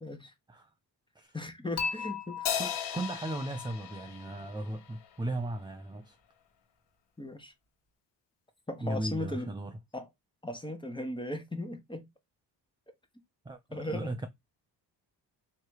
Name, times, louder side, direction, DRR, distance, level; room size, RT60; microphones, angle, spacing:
voice 1, 0.0-0.3 1.3-2.5 7.2-7.5 8.7-9.5 9.9-10.1 10.4-12.1 13.7-14.1, left 1 dB, 10° left, 1.1 m, -37 dB
Dishes pots and pans / Chink clink, 1.8-4.9, left 6 dB, 40° left, 1.7 m, -39 dB
Crash cymbal, 2.5-5.1, left 9 dB, 80° left, 0.8 m, -36 dB
voice 2, 2.6-6.2 8.8-9.7 13.4-14.3, right 2 dB, 10° right, 0.5 m, -36 dB
3.2 x 2.9 x 4.7 m
cardioid pair, 80°, 41 cm